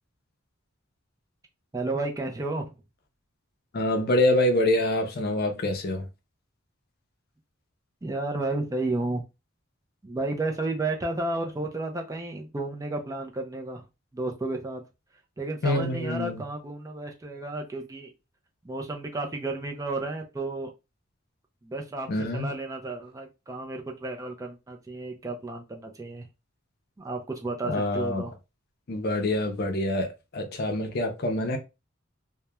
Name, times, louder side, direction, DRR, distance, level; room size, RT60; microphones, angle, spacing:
voice 1, 1.7-2.8 8.0-9.2 10.0-13.8 14.1-14.8 15.4-18.1 18.6-20.7 21.6-26.3 27.0-28.3, right 2 dB, 15° right, 0.4 m, -32 dB
voice 2, 3.7-6.1 15.6-16.4 22.1-22.5 27.7-28.3 28.9-30.1 30.3-31.6, left 1 dB, 50° left, 0.5 m, -25 dB
2.9 x 2.1 x 2.2 m
head